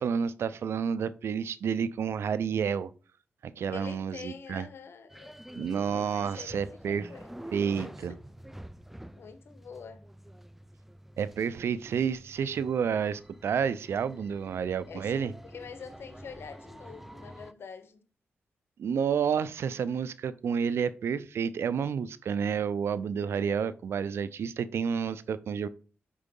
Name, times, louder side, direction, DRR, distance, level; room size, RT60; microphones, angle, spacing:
voice 1, 0.0-2.9 3.4-4.7 5.6-7.0 7.5-8.1 11.2-15.3 18.8-25.7, right 7 dB, 75° right, 0.4 m, -30 dB
voice 2, 3.7-5.4 5.9-8.2 9.2-10.0 14.9-18.1 23.2-23.7, left 6 dB, 70° left, 0.9 m, -46 dB
sound 1, 5.1-17.5, right 1 dB, 5° right, 0.4 m, -48 dB
4.9 x 4.6 x 5.2 m
cardioid pair, 70°, 4 cm